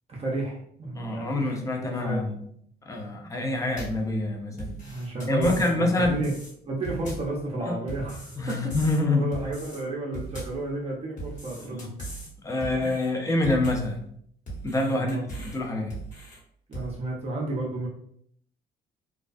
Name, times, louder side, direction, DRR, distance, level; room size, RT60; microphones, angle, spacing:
voice 1, 0.1-2.3 4.8-6.3 6.7-8.6 8.8-11.9 12.5-12.9 14.9-15.3 16.7-17.9, right 2 dB, 30° right, -3 dB, 0.6 m, -32 dB
voice 2, 0.9-2.5 2.9-4.8 5.3-6.2 7.7-7.8 8.4-9.3 11.5-11.9 12.4-14.1 14.6-15.9, left 2 dB, 15° left, 2 dB, 0.5 m, -26 dB
sound 1, 3.8-4.1 4.6-5.7 6.0-6.5 6.8-7.4 7.9-9.0 9.3-9.8 10.1-10.7 11.2-12.3 12.6-13.1 13.4-13.9 14.5-15.6 15.9-16.4 16.7-16.9, right 2 dB, 40° left, 1.2 m, -38 dB
2.2 x 2.2 x 2.5 m, 0.67 s
cardioid pair, 110°, 19 cm